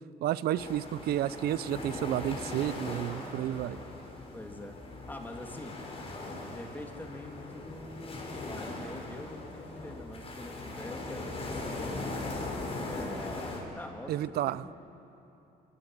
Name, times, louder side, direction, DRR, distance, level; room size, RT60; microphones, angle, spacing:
voice 1, 0.2-3.8 14.1-14.6, right 12 dB, 70° right, 17 dB, 0.7 m, -31 dB
sound 1, 0.6-13.6, left 2 dB, 35° left, 5.6 m, -39 dB
sound 2, 2.7-7.0 7.3-7.4, right 3 dB, 35° right, 3.7 m, -56 dB
voice 2, 4.3-4.8 5.1-5.7 6.5-11.8 12.8-14.7, left 1 dB, 10° left, 2 dB, 3.0 m, -44 dB
26.5 x 25.5 x 7.6 m, 2.8 s
cardioid pair, 110°, 17 cm